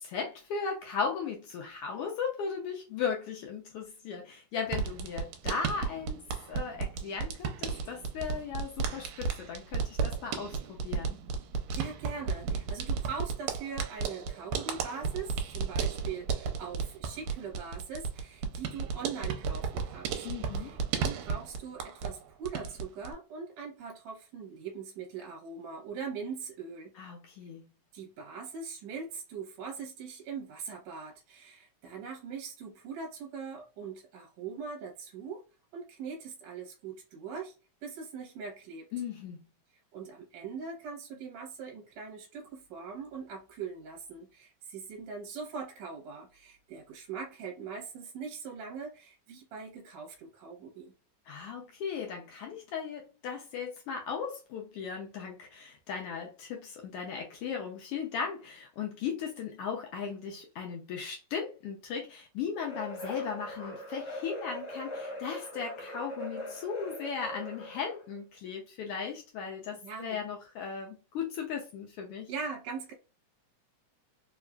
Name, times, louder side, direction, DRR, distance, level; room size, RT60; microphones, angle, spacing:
voice 1, 0.0-11.2 20.2-20.7 26.9-27.6 38.9-39.5 51.3-72.3, left 6 dB, 80° left, 1.3 m, -37 dB
sound 1, 4.7-22.2 22.4-23.1, right 5 dB, 85° right, 2.0 m, -34 dB
voice 2, 11.7-20.2 20.6-26.9 27.9-35.4 35.7-37.5 37.8-38.9 39.9-51.0 69.7-70.2 72.3-72.9, right 5 dB, 70° right, 1.9 m, -41 dB
sound 2, 62.6-68.1, equal, 45° left, 0.9 m, -41 dB
4.7 x 2.4 x 2.2 m
omnidirectional pair, 3.3 m